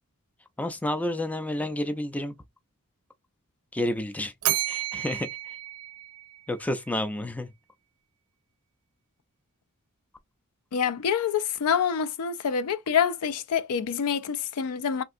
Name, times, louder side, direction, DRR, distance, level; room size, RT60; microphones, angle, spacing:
voice 1, 0.6-2.4 3.7-4.3 4.7-5.6 6.5-7.5, left 1 dB, 5° left, 0.3 m, -30 dB
Bell, 4.4-6.7, right 14 dB, 75° right, 0.5 m, -31 dB
voice 2, 10.7-15.0, left 7 dB, 90° left, 0.4 m, -26 dB
3.4 x 2.5 x 2.6 m
head